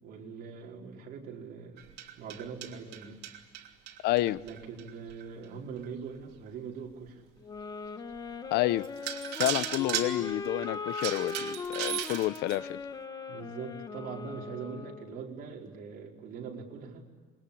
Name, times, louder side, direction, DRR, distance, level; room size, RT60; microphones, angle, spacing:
voice 1, 0.0-3.2 4.4-7.2 9.4-9.5 9.8-10.2 13.3-17.0, right 6 dB, 55° right, 0 dB, 4.7 m, -42 dB
sound 1, 1.8-5.3 5.8-5.9 6.5-6.6 7.1-7.2 8.3-8.4 8.8-12.7, right 11 dB, 80° right, 3.0 m, -36 dB
voice 2, 4.0-4.4 8.5-8.8 9.4-12.8, left 16 dB, 75° left, 18 dB, 0.8 m, -29 dB
sound 2, 7.4-15.3, left 4 dB, 20° left, 1.2 m, -39 dB
27.0 x 22.5 x 8.6 m, 1.4 s
cardioid pair, 165°, 17 cm